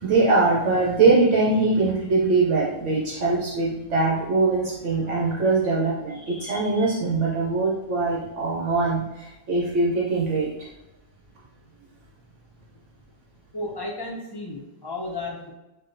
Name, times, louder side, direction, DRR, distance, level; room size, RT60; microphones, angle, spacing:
voice 1, 0.0-10.5, right 3 dB, 70° right, -5 dB, 1.1 m, -22 dB
voice 2, 13.5-15.5, left 2 dB, 40° left, -1 dB, 0.3 m, -33 dB
6.1 x 2.2 x 2.5 m, 0.97 s
omnidirectional pair, 1.3 m